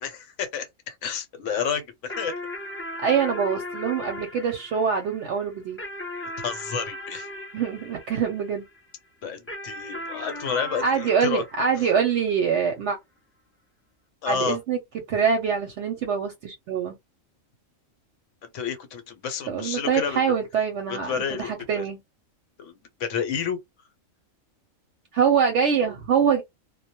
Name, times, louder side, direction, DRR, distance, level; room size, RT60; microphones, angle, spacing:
voice 1, 0.0-2.4 6.4-7.3 9.2-11.4 11.8-11.9 14.2-14.6 18.4-20.2 20.9-21.8 22.6-23.6, left 6 dB, 70° left, 1.0 m, -30 dB
sound 1, 2.1-8.8 9.5-12.3, left 1 dB, 20° left, 0.4 m, -37 dB
voice 2, 3.0-5.8 7.5-8.7 10.8-13.0 14.2-14.8 15.1-17.0 19.5-22.0 25.1-26.4, right 6 dB, 70° right, 0.8 m, -24 dB
2.1 x 2.1 x 2.8 m
omnidirectional pair, 1.4 m